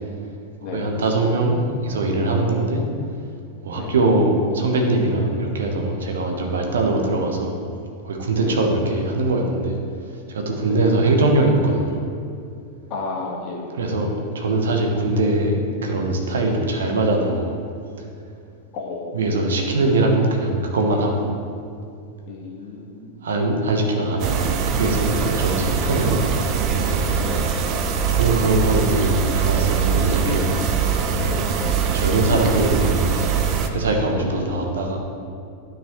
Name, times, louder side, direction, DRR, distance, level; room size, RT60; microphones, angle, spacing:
voice 1, 0.6-2.8 3.6-7.6 8.0-9.8 10.3-12.0 13.7-14.1 14.3-17.5 19.1-21.3 23.2-26.3 28.1-30.5 31.9-33.1 33.7-35.0, right 2 dB, 65° right, 2 dB, 1.0 m, -21 dB
voice 2, 12.9-13.7 18.7-19.2 19.8-19.9 22.3-23.2 27.2-27.5 30.2-30.5 31.1-31.3 34.0-34.3, left 4 dB, 40° left, -2 dB, 1.6 m, -32 dB
sound 1, 24.2-33.7, right 6 dB, 35° right, 0.6 m, -22 dB
12.5 x 5.0 x 3.1 m, 2.4 s
figure-of-eight pair, 90°, 0 cm